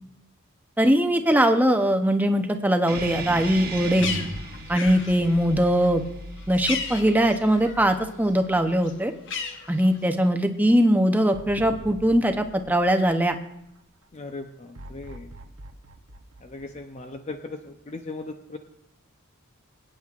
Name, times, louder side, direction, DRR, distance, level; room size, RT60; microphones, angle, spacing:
voice 1, 0.8-4.1 4.7-6.0 6.5-9.1 9.7-13.3, equal, 10° right, 6 dB, 0.7 m, -21 dB
sound 1, 2.9-7.9, right 3 dB, 45° right, 1.2 m, -37 dB
sound 2, 2.9-9.3 9.7-9.8 11.3-13.8 14.7-17.5, equal, 90° right, 0.8 m, -43 dB
Bird, 3.4-8.0 8.3-10.3, left 5 dB, 60° left, 1.1 m, -36 dB
voice 2, 14.1-15.3 16.4-18.6, left 3 dB, 30° left, 5 dB, 0.6 m, -38 dB
22.5 x 9.1 x 2.4 m, 0.77 s
head